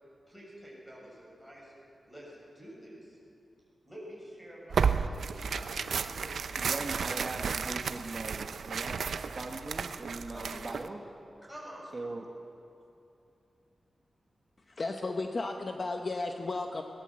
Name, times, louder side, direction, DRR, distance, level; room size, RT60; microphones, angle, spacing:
voice 1, 0.3-1.7 2.0-3.2 3.8-7.0 10.3-10.7 11.4-11.9, equal, 5° left, -5 dB, 7.2 m, -48 dB
Tearing, 4.7-10.9, right 6 dB, 80° right, 0.7 m, -33 dB
voice 2, 6.6-11.0 11.9-12.3, right 2 dB, 30° right, 1 dB, 1.3 m, -40 dB
voice 3, 14.7-16.8, left 3 dB, 40° left, 4 dB, 0.9 m, -34 dB
21.5 x 19.0 x 7.6 m, 2.7 s
wide cardioid pair, 160°, 0 cm